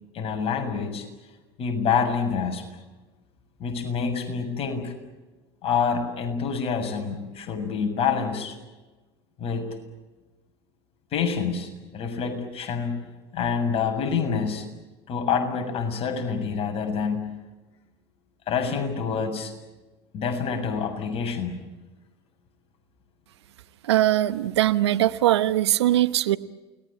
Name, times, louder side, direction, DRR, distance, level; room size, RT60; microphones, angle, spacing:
voice 1, 0.1-1.1 1.6-2.6 3.6-4.9 5.6-8.5 9.4-9.7 11.1-13.0 13.3-14.7 15.1-17.3 18.5-19.5 20.1-21.6, left 6 dB, 45° left, 6 dB, 7.0 m, -27 dB
voice 2, 23.8-26.4, right 13 dB, 80° right, 14 dB, 1.1 m, -21 dB
29.0 x 20.5 x 8.8 m, 1.2 s
hypercardioid pair, 85°, 14 cm